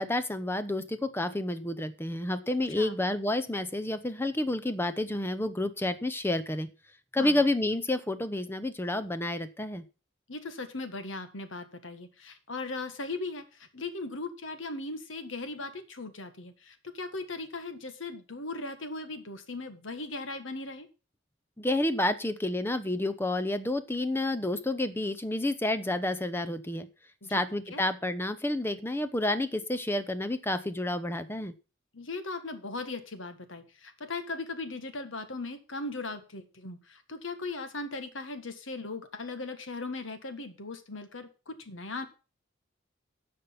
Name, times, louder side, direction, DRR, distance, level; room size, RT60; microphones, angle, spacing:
voice 1, 0.0-6.7 7.1-9.8 21.6-26.9 27.3-31.5, left 1 dB, 10° left, 12 dB, 0.8 m, -30 dB
voice 2, 10.3-20.9 27.2-27.4 27.7-27.8 31.9-42.1, left 3 dB, 80° left, 9 dB, 1.6 m, -38 dB
14.0 x 5.3 x 5.8 m, 0.33 s
head